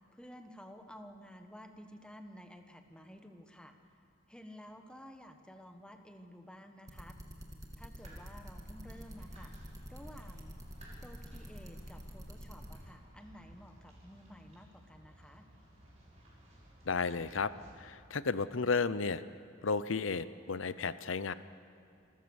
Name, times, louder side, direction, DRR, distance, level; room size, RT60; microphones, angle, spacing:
voice 1, 0.1-3.7 4.3-7.2 7.8-9.5 9.9-10.6 11.0-15.4, equal, 5° left, 5 dB, 1.3 m, -52 dB
sound 1, 6.9-12.8, equal, 20° right, 2.2 m, -47 dB
sound 2, 7.9-17.9, equal, 35° right, 6.3 m, -57 dB
voice 2, 16.8-19.2 19.6-21.3, left 4 dB, 75° left, 15 dB, 0.7 m, -33 dB
27.0 x 14.0 x 7.1 m, 2.6 s
head